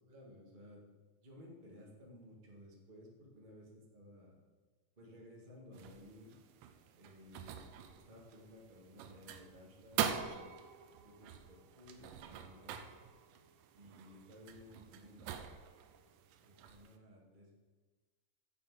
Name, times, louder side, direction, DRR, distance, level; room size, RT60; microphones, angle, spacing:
voice 1, 0.1-0.8 1.2-4.5 5.0-6.4 6.9-7.6 7.9-10.8 11.0-12.8 13.7-15.5 16.4-17.5, left 1 dB, 30° right, -2 dB, 0.9 m, -57 dB
sound 1, 5.7-17.0, right 8 dB, 80° right, 2.2 m, -44 dB
7.3 x 6.2 x 7.2 m, 1.3 s
omnidirectional pair, 4.0 m